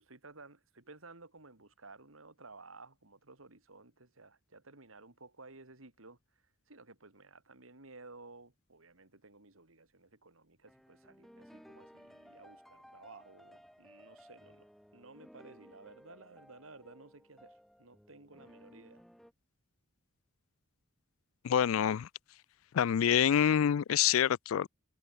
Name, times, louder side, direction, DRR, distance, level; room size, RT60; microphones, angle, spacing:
voice 1, 0.0-14.7 14.9-19.1, right 3 dB, 85° right, 3.4 m, -55 dB
sound 1, 10.7-19.3, equal, ahead, 4.9 m, -58 dB
voice 2, 21.4-22.1 22.7-24.7, left 9 dB, 80° left, 0.4 m, -26 dB
head